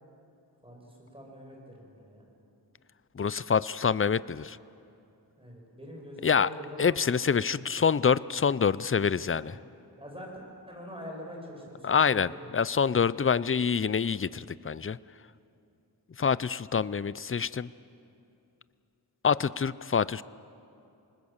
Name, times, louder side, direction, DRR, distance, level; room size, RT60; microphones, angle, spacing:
voice 1, 0.6-2.2 5.4-7.4 9.3-9.5 10.0-10.3 10.7-12.4, equal, 15° right, -1 dB, 6.8 m, -44 dB
voice 2, 3.2-4.6 6.2-6.5 6.8-9.6 11.8-15.0 16.2-17.7 19.2-20.2, left 6 dB, 35° left, 19 dB, 0.5 m, -26 dB
26.5 x 20.0 x 7.2 m, 2.7 s
wide cardioid pair, 70°, 41 cm